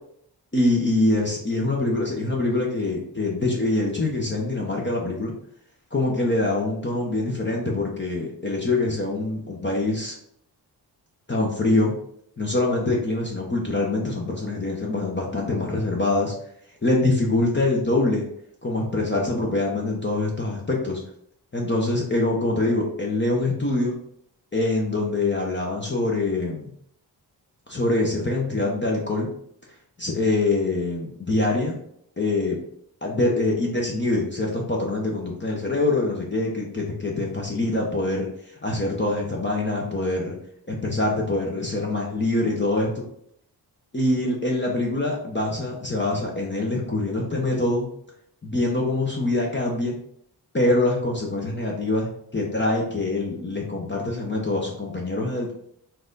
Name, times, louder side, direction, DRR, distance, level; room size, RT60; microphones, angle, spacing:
voice 1, 0.5-5.3 5.9-10.2 11.3-11.9 12.4-16.3 16.8-18.2 18.6-21.0 21.5-23.9 24.5-26.7 27.7-29.3 30.0-31.8 32.2-32.6 33.0-38.3 38.6-40.3 40.7-43.0 43.9-47.9 48.4-50.0 50.5-55.5, left 2 dB, 25° left, -2 dB, 1.1 m, -24 dB
4.5 x 2.6 x 3.9 m, 0.68 s
cardioid pair, 50°, 43 cm